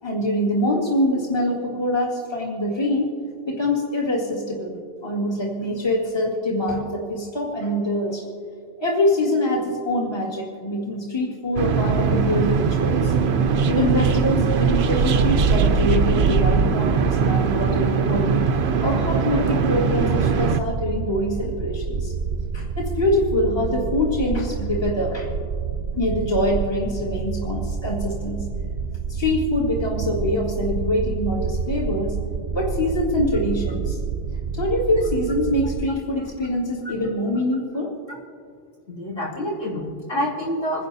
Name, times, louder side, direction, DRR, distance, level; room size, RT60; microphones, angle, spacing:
voice 1, 0.0-3.1 3.5-8.2 8.8-13.1 13.7-18.4 18.8-22.1 22.5-25.3 25.9-28.4 29.1-32.2 32.5-34.0 34.5-37.9, left 1 dB, 25° left, -3 dB, 1.9 m, -24 dB
sound 1, 11.6-20.6, right 5 dB, 80° right, 0.9 m, -20 dB
sound 2, 19.9-35.9, right 5 dB, 55° right, 0.6 m, -28 dB
voice 2, 38.9-40.9, equal, 65° left, -7 dB, 3.4 m, -27 dB
27.5 x 10.5 x 2.7 m, 2.1 s
omnidirectional pair, 1.1 m